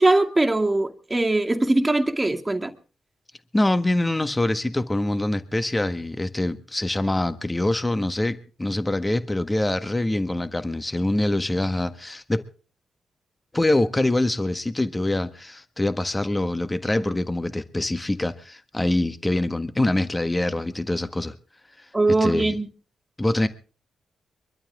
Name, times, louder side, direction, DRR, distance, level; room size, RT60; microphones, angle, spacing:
voice 1, 0.0-2.7 21.9-22.7, right 2 dB, 20° right, 2.3 m, -21 dB
voice 2, 3.5-12.4 13.5-21.3 22.1-22.5 23.2-23.5, left 1 dB, 20° left, 1.5 m, -24 dB
23.5 x 13.0 x 3.6 m
supercardioid pair, 50°, 0 cm